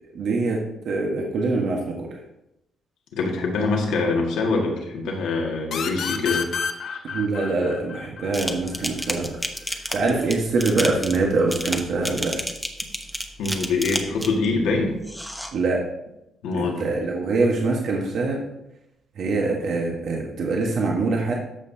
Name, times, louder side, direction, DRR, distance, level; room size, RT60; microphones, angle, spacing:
voice 1, 0.1-0.6 0.8-2.1 7.1-9.3 9.7-12.3 15.5-15.8 16.5-18.4 19.2-21.3, right 3 dB, 65° right, -1 dB, 1.3 m, -24 dB
voice 2, 3.1-6.5 6.9-7.0 13.4-15.0 16.4-16.8, left 3 dB, 85° left, 0 dB, 1.9 m, -24 dB
sound 1, 5.7-9.1, left 6 dB, 65° left, 0.8 m, -30 dB
sound 2, 8.3-14.5 15.0-15.5, equal, 5° left, 1.0 m, -30 dB
13.0 x 5.7 x 2.8 m, 0.85 s
cardioid pair, 90°, 0 cm